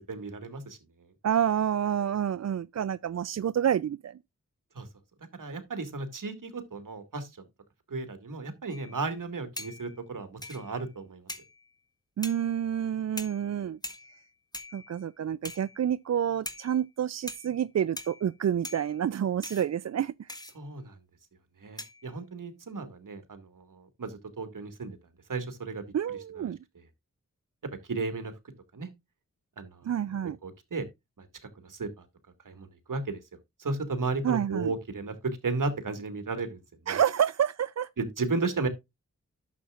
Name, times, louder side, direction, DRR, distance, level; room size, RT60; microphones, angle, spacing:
voice 1, 0.1-0.8 4.8-4.9 5.3-7.3 7.9-11.2 20.5-20.9 21.6-25.0 25.3-25.8 26.4-26.5 27.9-28.3 28.7-28.9 29.6-29.8 30.4-30.9 31.2-31.3 31.6-31.9 32.5-33.2 33.6-36.6 36.9-37.0 38.0-38.7, right 3 dB, 75° right, 2.1 m, -34 dB
voice 2, 1.2-4.2 12.2-13.8 14.7-20.3 25.9-26.6 29.8-30.4 34.2-34.7 36.9-37.9, right 9 dB, 55° right, 0.4 m, -28 dB
sound 1, 8.7-9.1 9.5-10.0 10.4-10.9 11.3-11.7 12.2-12.5 13.2-13.6 13.8-14.3 14.5-15.0 15.4-15.9 16.4-16.8 17.3-17.6 18.0-18.3 18.6-19.0 19.4-19.7 20.3-20.5 21.8-22.1, left 1 dB, 10° left, 1.5 m, -42 dB
11.0 x 7.4 x 2.4 m
cardioid pair, 45°, 32 cm